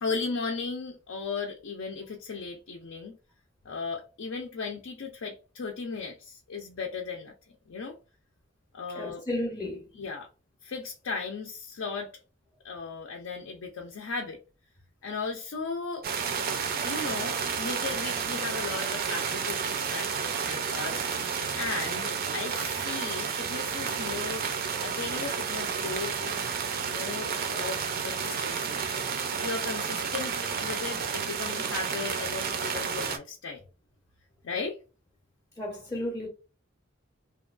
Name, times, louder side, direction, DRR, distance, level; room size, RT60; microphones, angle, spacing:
voice 1, 0.0-3.2 3.7-7.3 7.7-7.9 8.7-9.2 9.9-10.3 10.6-12.1 12.6-14.4 15.0-16.1 16.8-21.3 21.6-24.5 24.8-26.4 26.8-28.8 29.3-33.6 34.4-34.8, left 4 dB, 70° left, 0.4 m, -36 dB
voice 2, 8.9-9.9 35.6-36.3, left 1 dB, 15° left, 0.5 m, -33 dB
sound 1, 16.0-33.2, right 6 dB, 50° right, 0.4 m, -31 dB
2.9 x 2.2 x 2.4 m
head